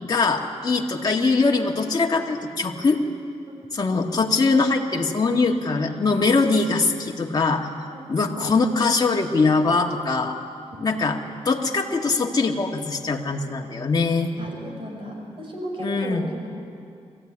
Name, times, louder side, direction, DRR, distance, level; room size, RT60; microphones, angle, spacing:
voice 1, 0.0-3.0 3.7-7.7 8.1-10.4 10.8-11.2 11.5-14.3 15.8-16.3, left 3 dB, 35° left, 0 dB, 1.8 m, -22 dB
voice 2, 7.9-8.4 14.4-16.5, right 1 dB, 50° right, 0 dB, 5.7 m, -35 dB
22.5 x 15.0 x 9.8 m, 2.4 s
wide cardioid pair, 110°, 12 cm